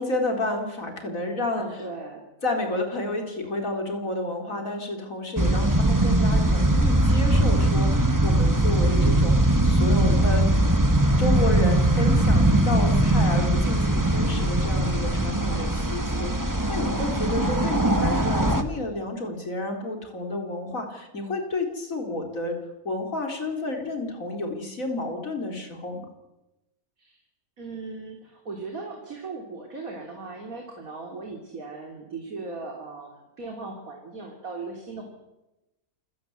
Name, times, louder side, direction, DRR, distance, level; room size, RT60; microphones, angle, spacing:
voice 1, 0.0-1.6 2.4-10.5 11.2-22.6 22.8-26.1, left 2 dB, 65° left, 4 dB, 4.6 m, -30 dB
voice 2, 1.5-2.2 17.2-17.9 27.0-27.2 27.6-35.0, right 3 dB, 70° right, 1 dB, 3.7 m, -38 dB
sound 1, 5.4-18.6, right 1 dB, 15° right, 1.6 m, -21 dB
28.0 x 17.0 x 8.1 m, 0.97 s
omnidirectional pair, 1.5 m